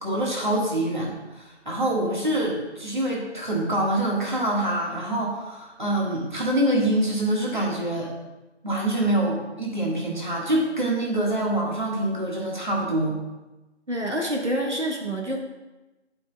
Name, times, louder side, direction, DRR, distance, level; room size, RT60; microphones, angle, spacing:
voice 1, 0.0-8.1 8.6-13.2, right 1 dB, 40° right, -3 dB, 1.8 m, -25 dB
voice 2, 13.9-15.4, right 1 dB, 80° right, 0 dB, 1.7 m, -27 dB
17.0 x 6.0 x 2.4 m, 1.1 s
figure-of-eight pair, 170°, 35 cm